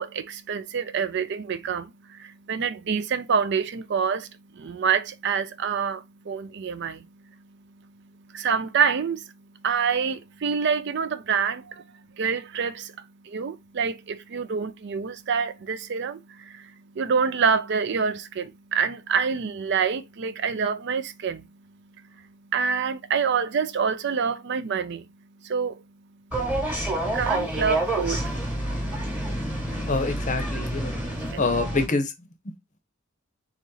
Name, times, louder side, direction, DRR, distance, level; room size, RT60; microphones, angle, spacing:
voice 1, 0.0-29.9 31.0-31.4, right 6 dB, 55° right, 0.4 m, -28 dB
sound 1, 26.3-31.9, right 1 dB, 5° right, 1.2 m, -28 dB
voice 2, 29.9-31.0 31.4-32.1 32.4-32.5, left 3 dB, 35° left, 0.7 m, -26 dB
4.1 x 3.0 x 3.8 m
head